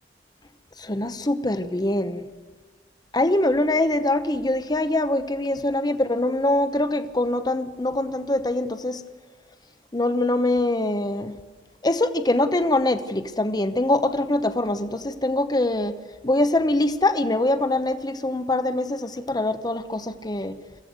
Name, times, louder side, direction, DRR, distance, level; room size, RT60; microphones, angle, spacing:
voice 1, 0.8-2.2 3.1-9.0 9.9-11.3 11.8-15.9 16.2-20.6, left 2 dB, 20° left, 10 dB, 0.9 m, -23 dB
24.0 x 15.5 x 8.1 m, 1.4 s
head